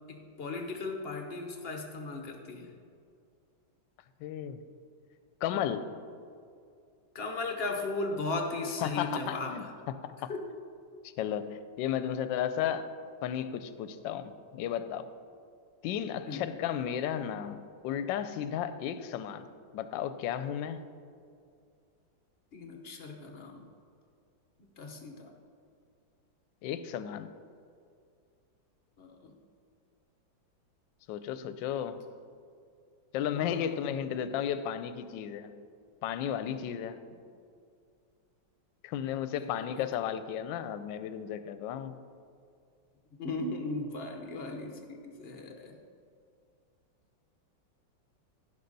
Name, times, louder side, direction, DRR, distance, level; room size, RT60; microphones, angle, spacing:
voice 1, 0.1-2.7 7.1-9.7 10.3-10.4 16.3-16.5 22.5-23.6 24.8-25.3 29.0-29.3 33.3-33.8 39.3-39.5 39.8-39.9 43.2-45.8, left 3 dB, 50° left, 3 dB, 0.7 m, -37 dB
voice 2, 4.2-4.6 5.4-5.9 8.8-9.7 10.0-10.3 11.2-12.9 13.2-15.1 15.8-19.5 19.7-20.8 26.6-27.3 31.1-32.0 33.1-35.5 36.0-37.0 38.8-41.9, left 9 dB, 80° left, 12 dB, 1.2 m, -34 dB
16.0 x 5.7 x 4.0 m, 2.3 s
omnidirectional pair, 2.1 m